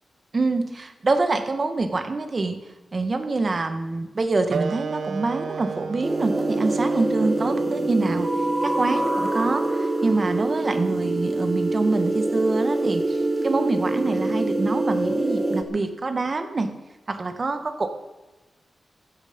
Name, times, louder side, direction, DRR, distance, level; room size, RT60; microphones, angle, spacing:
voice 1, 0.3-2.6 2.9-8.3 8.6-16.7 17.1-17.9, right 3 dB, 35° right, 8 dB, 1.6 m, -25 dB
Wind instrument woodwind instrument, 4.5-9.6, right 6 dB, 80° right, 1.0 m, -35 dB
sound 1, 6.0-15.6, right 2 dB, 15° right, 1.5 m, -25 dB
15.5 x 13.0 x 5.4 m, 1.1 s
wide cardioid pair, 150°, 0 cm